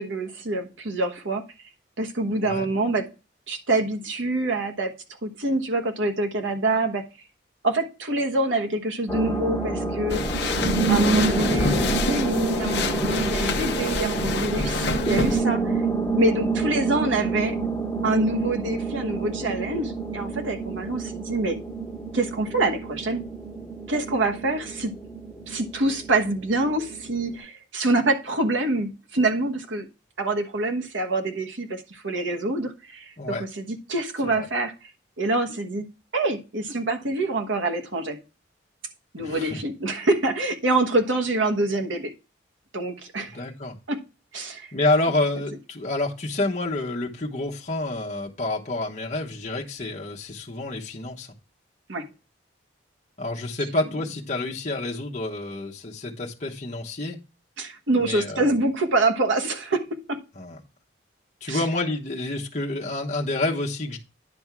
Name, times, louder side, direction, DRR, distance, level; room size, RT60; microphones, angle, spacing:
voice 1, 0.0-1.4 2.0-3.1 3.5-5.0 5.2-7.1 7.6-10.6 10.9-15.8 16.1-17.6 18.0-21.6 22.1-23.3 23.9-25.0 25.5-29.9 30.2-34.7 35.2-35.9 36.1-38.2 39.1-42.1 42.7-43.4 43.9-44.0 44.3-44.7 51.9-52.1 57.6-60.2 61.5-61.6, right 2 dB, 80° right, 1.2 m, -26 dB
sound 1, 9.1-27.3, right 4 dB, ahead, 2.1 m, -28 dB
sound 2, 10.1-15.4, left 3 dB, 60° left, 0.7 m, -27 dB
voice 2, 14.8-15.2 33.2-33.4 34.2-34.5 39.2-39.6 43.2-43.8 44.7-51.3 53.2-57.2 58.0-58.5 60.4-60.6 61.4-64.0, left 2 dB, 35° left, 1.0 m, -28 dB
10.0 x 3.5 x 5.9 m
head